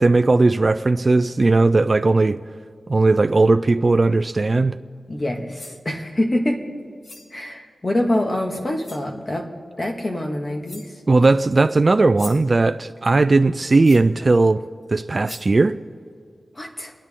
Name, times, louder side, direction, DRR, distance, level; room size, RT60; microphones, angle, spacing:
voice 1, 0.0-2.4 2.9-4.8 11.1-14.6 14.9-15.8, right 3 dB, 40° right, 0.4 m, -17 dB
voice 2, 5.1-6.6 7.3-9.5 9.8-10.9 16.6-16.9, left 1 dB, 30° left, 1.9 m, -25 dB
sound 1, 5.3-5.8 7.0-7.4 8.3-8.4 8.8-9.1 10.2-10.3 10.6-11.0 11.9-12.6 13.8-14.2 14.8-14.9 15.2-15.6, left 2 dB, 60° left, 1.3 m, -41 dB
29.0 x 10.5 x 3.7 m
wide cardioid pair, 100°, 0 cm